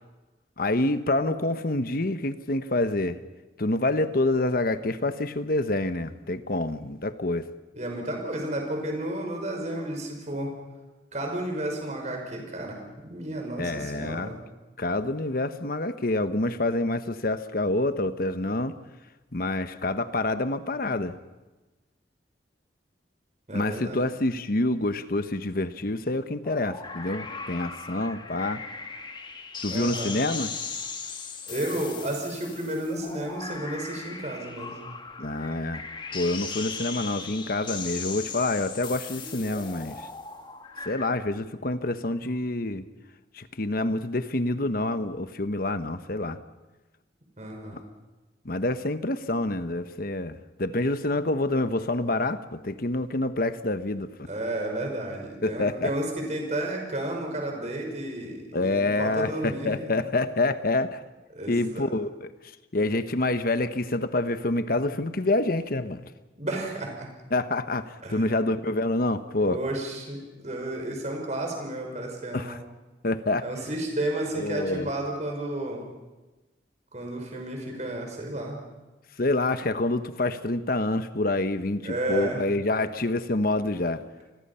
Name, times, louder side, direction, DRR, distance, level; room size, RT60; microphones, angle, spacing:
voice 1, 0.6-3.2 3.6-7.5 13.6-14.3 14.8-18.8 19.3-21.2 23.5-28.6 29.6-30.5 35.2-35.8 36.1-40.1 40.9-42.8 43.4-46.4 48.4-54.3 55.4-55.9 58.5-61.0 61.5-62.3 62.7-66.0 67.3-69.6 72.3-72.6 73.0-73.5 74.3-74.9 79.2-84.0, left 2 dB, 55° left, 11 dB, 1.1 m, -27 dB
voice 2, 7.7-10.5 11.1-14.4 23.5-24.0 29.7-30.2 31.5-34.9 47.4-47.8 54.3-59.8 61.3-61.8 66.4-67.1 68.0-68.3 69.4-72.6 73.4-75.9 76.9-78.6 81.8-82.4, right 1 dB, 40° right, 2 dB, 5.5 m, -32 dB
sound 1, 26.4-41.1, left 5 dB, 25° left, 1.7 m, -38 dB
29.5 x 21.0 x 5.7 m, 1.1 s
head